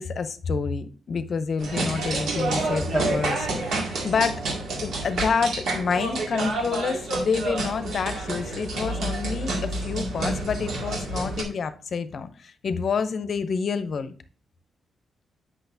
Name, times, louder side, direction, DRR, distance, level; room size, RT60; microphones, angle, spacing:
voice 1, 0.0-4.4 4.8-14.1, left 5 dB, 50° left, 0.6 m, -28 dB
sound 1, 1.6-11.4, right 2 dB, 80° right, 2.0 m, -28 dB
8.1 x 6.0 x 2.7 m
wide cardioid pair, 140°, 0 cm